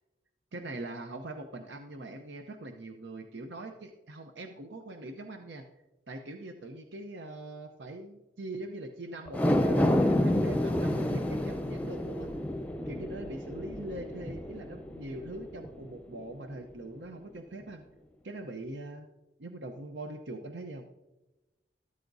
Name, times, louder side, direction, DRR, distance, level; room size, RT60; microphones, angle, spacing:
voice 1, 0.5-5.7 6.1-12.3 12.9-17.8 18.2-19.1 19.4-20.9, right 2 dB, 85° right, 5 dB, 0.8 m, -42 dB
sound 1, 9.3-15.8 16.2-16.3, left 1 dB, 10° left, 0.6 m, -29 dB
13.5 x 12.0 x 2.7 m, 1.1 s
head